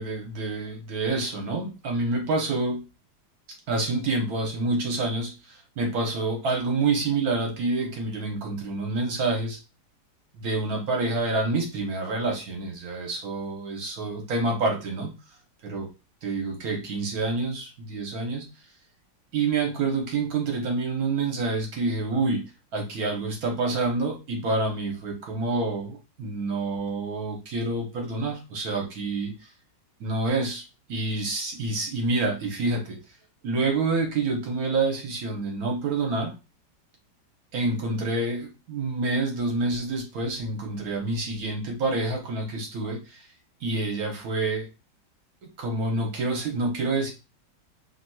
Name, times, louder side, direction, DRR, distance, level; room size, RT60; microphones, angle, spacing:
voice 1, 0.0-2.8 3.7-9.6 10.3-15.1 15.6-15.9 16.2-18.4 19.3-22.4 22.7-29.3 30.0-30.6 30.9-33.0 33.4-36.3 37.5-43.2 43.6-44.7 45.4-47.1, right 3 dB, 65° right, 1 dB, 1.3 m, -27 dB
3.3 x 2.8 x 2.2 m, 0.28 s
omnidirectional pair, 1.8 m